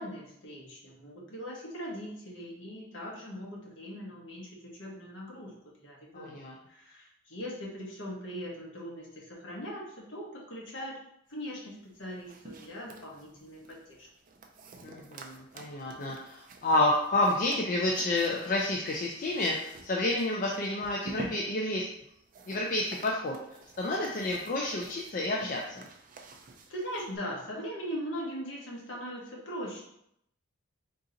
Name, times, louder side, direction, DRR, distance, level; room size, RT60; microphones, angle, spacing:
voice 1, 0.0-5.5 5.8-6.4 6.7-11.0 11.3-14.1 26.7-29.8, equal, 60° left, -3 dB, 1.2 m, -40 dB
voice 2, 6.1-6.5 14.8-21.9 22.5-23.4 23.8-25.8, left 2 dB, 40° left, -1 dB, 0.4 m, -30 dB
sound 1, 11.8-27.2, right 3 dB, 40° right, 0.4 m, -49 dB
3.7 x 2.8 x 3.8 m, 0.75 s
head